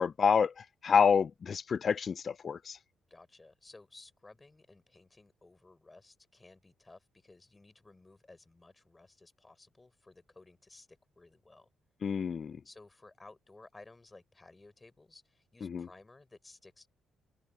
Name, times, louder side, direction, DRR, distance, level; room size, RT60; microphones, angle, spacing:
voice 1, 0.0-2.8 12.0-12.6 15.6-15.9, left 6 dB, 45° left, 0.5 m, -28 dB
voice 2, 3.1-11.7 12.6-16.9, left 2 dB, 20° left, 6.9 m, -57 dB
open air
cardioid pair, 90°, 0 cm